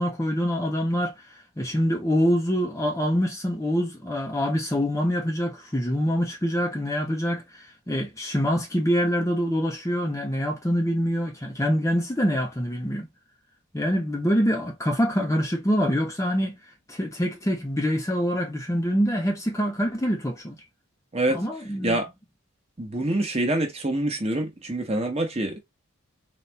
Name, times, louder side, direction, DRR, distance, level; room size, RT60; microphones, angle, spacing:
voice 1, 0.0-13.1 13.7-16.6 16.9-20.6 21.3-22.0, equal, 15° left, 0.7 m, -25 dB
voice 2, 21.1-22.1 22.8-25.6, right 1 dB, 30° right, 1.0 m, -26 dB
4.1 x 2.5 x 3.3 m
head